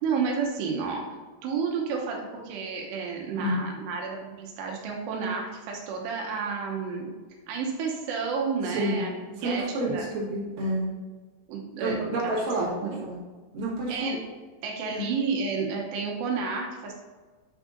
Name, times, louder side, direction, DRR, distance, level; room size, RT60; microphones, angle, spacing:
voice 1, 0.0-1.0 1.4-7.1 7.5-10.1 11.5-13.0 13.9-14.2 14.6-17.0, right 5 dB, 90° right, 0 dB, 3.1 m, -31 dB
voice 2, 8.7-9.0 9.4-10.9 11.8-12.7 13.0-13.2 13.5-14.1 14.9-15.1, right 1 dB, 55° right, -7 dB, 3.6 m, -29 dB
8.8 x 6.2 x 2.6 m, 1.4 s
omnidirectional pair, 4.8 m